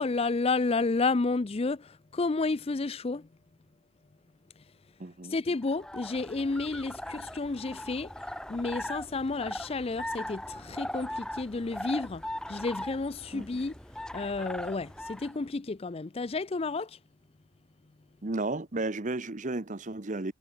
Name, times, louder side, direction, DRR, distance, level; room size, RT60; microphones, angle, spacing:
voice 1, 0.0-3.3 5.3-8.1 8.5-13.7 14.1-17.0, left 3 dB, 25° left, 0.4 m, -31 dB
voice 2, 5.0-5.3 13.3-13.4 18.2-20.3, right 2 dB, 35° right, 1.0 m, -33 dB
sound 1, 5.6-15.4, left 1 dB, 5° left, 0.9 m, -40 dB
head